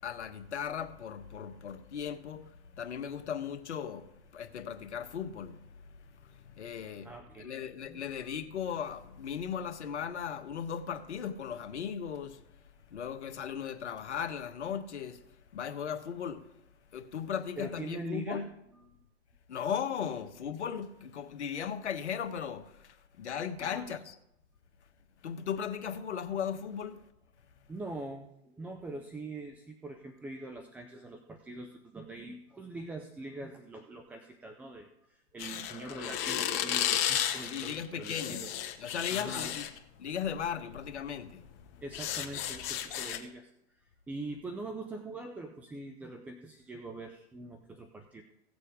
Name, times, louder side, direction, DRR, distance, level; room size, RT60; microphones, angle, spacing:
voice 1, 0.0-15.2 15.5-16.6 16.9-18.5 19.5-24.2 25.2-27.0 37.4-38.5 38.8-39.7 40.0-41.4, left 8 dB, 80° left, 1.3 m, -37 dB
voice 2, 7.0-7.6 7.9-8.4 17.6-18.4 18.7-19.1 23.6-23.9 27.7-38.5 39.1-39.5 41.8-43.5 44.1-48.2, right 2 dB, 5° right, 0.3 m, -43 dB
sound 1, 35.4-39.8 40.8-41.0 41.3-43.2, left 10 dB, 40° left, 1.4 m, -33 dB
17.0 x 6.9 x 5.0 m
hypercardioid pair, 120°, 34 cm